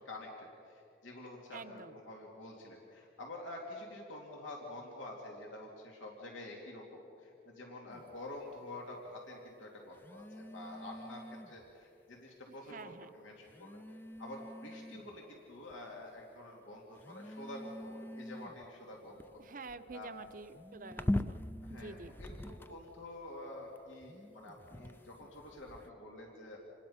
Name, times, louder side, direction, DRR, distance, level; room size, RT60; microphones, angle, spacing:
voice 1, 0.0-19.4 19.9-20.1 21.6-26.6, left 1 dB, 85° left, -1 dB, 2.9 m, -48 dB
voice 2, 1.5-2.0 12.5-13.1 19.4-21.4 21.7-22.1, right 3 dB, 45° right, 11 dB, 0.7 m, -48 dB
sound 1, 7.9-8.2 9.9-11.7 12.7-12.8 13.5-15.2 15.7-16.2 16.9-23.0 23.8-25.9, left 1 dB, 10° left, 0.4 m, -43 dB
27.5 x 20.0 x 5.7 m, 2.8 s
head